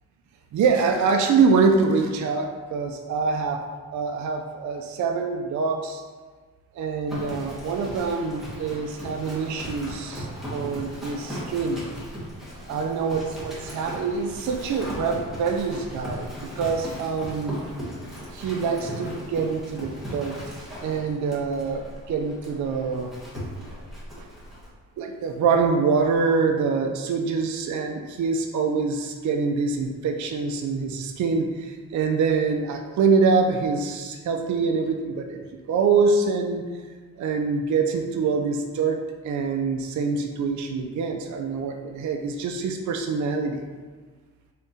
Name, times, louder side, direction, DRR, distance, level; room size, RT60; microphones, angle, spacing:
voice 1, 0.5-3.6 3.9-6.0 6.8-11.8 12.7-17.6 18.3-20.4 20.8-23.1 24.2-24.3 25.0-36.6 37.2-43.6, right 4 dB, 55° right, 3 dB, 0.4 m, -25 dB
Livestock farm animals working animals, 7.1-24.7, equal, ahead, 1.4 m, -37 dB
3.7 x 3.4 x 2.7 m, 1.4 s
cardioid pair, 75°, 35 cm